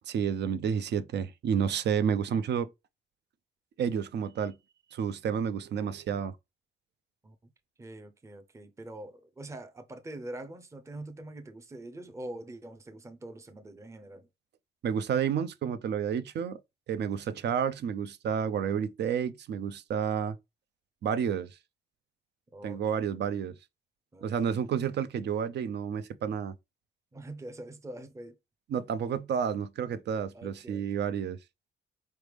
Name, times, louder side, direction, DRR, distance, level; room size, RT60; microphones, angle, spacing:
voice 1, 0.1-2.7 3.8-4.6 4.9-6.4 14.8-16.6 16.9-20.4 21.0-21.5 22.6-23.5 24.2-26.6 28.7-31.4, right 7 dB, 60° right, 0.5 m, -30 dB
voice 2, 7.8-14.3 17.2-17.4 22.5-23.5 24.1-24.7 27.1-28.3 30.3-30.9, right 1 dB, 15° right, 0.6 m, -44 dB
4.1 x 3.3 x 3.3 m
cardioid pair, 90°, 20 cm